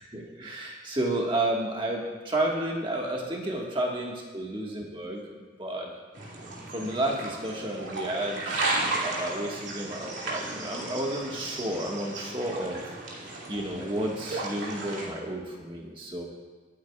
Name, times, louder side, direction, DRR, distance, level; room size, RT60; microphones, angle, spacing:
voice 1, 0.1-5.9 6.7-12.8 13.5-16.2, right 1 dB, 25° right, -2 dB, 1.6 m, -31 dB
sound 1, 6.1-15.1, right 2 dB, 80° right, 2.5 m, -34 dB
23.0 x 8.5 x 2.4 m, 1.4 s
head